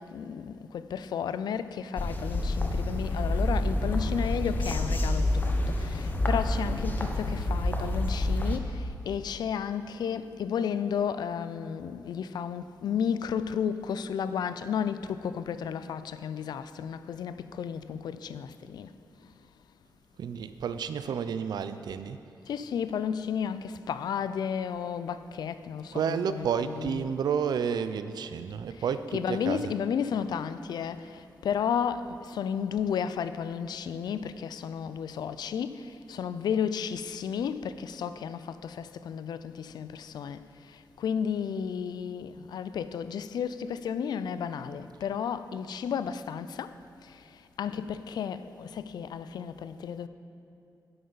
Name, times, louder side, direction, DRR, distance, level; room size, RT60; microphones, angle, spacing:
voice 1, 0.0-8.7 9.1-18.9 22.5-27.0 29.1-31.0 31.4-35.8 36.1-40.4 41.0-46.7 47.6-50.1, left 7 dB, 80° left, 0.3 m, -32 dB
sound 1, 2.0-8.6, left 1 dB, 25° left, 0.7 m, -28 dB
voice 2, 20.2-22.2 25.9-29.8, right 7 dB, 75° right, 0.4 m, -31 dB
10.5 x 7.9 x 4.0 m
wide cardioid pair, 140°, 7 cm